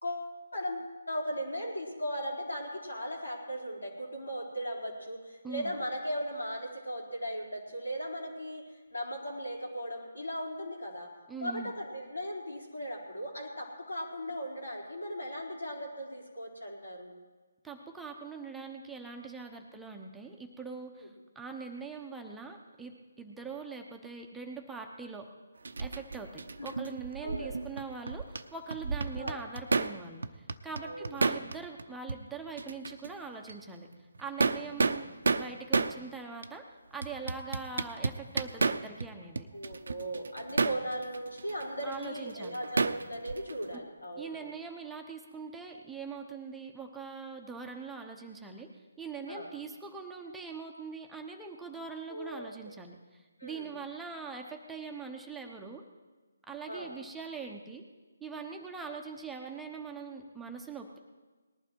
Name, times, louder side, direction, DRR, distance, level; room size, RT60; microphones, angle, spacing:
voice 1, 0.0-11.1 11.4-17.1 19.5-19.7 21.0-21.1 26.6-26.7 27.2-27.6 29.2-29.4 30.8-31.2 39.5-44.5 49.3-49.5 52.1-52.7 53.4-53.7 56.7-56.9, equal, 85° left, -2 dB, 4.2 m, -38 dB
voice 2, 5.4-5.8 11.3-11.7 17.6-25.3 25.8-33.9 34.2-36.7 36.9-39.5 41.8-42.6 44.2-55.8 56.5-57.8 58.2-61.0, right 5 dB, 5° right, 1 dB, 1.0 m, -42 dB
sound 1, 25.6-28.4 28.7-30.0 30.2-32.2 32.6-33.1 33.5-33.6 34.2-36.0 36.4-36.5 37.0-39.1 39.4-43.7, right 4 dB, 70° right, 0.7 m, -31 dB
19.5 x 11.5 x 4.6 m, 1.3 s
figure-of-eight pair, 150°, 0 cm